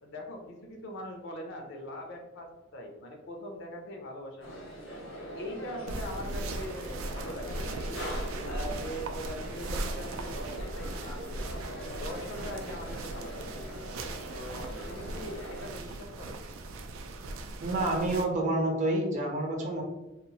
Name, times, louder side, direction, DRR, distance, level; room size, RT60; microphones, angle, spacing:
voice 1, 0.0-4.6 5.2-8.1 8.4-11.4 11.8-13.6 14.3-16.4, equal, 65° left, 3 dB, 0.5 m, -42 dB
sound 1, 4.4-15.7, equal, 90° left, 1.1 m, -42 dB
sound 2, 5.9-18.2, right 2 dB, 90° right, 0.3 m, -38 dB
voice 2, 17.6-19.8, right 1 dB, 40° right, 0 dB, 0.6 m, -28 dB
2.9 x 2.0 x 2.7 m, 1.1 s
head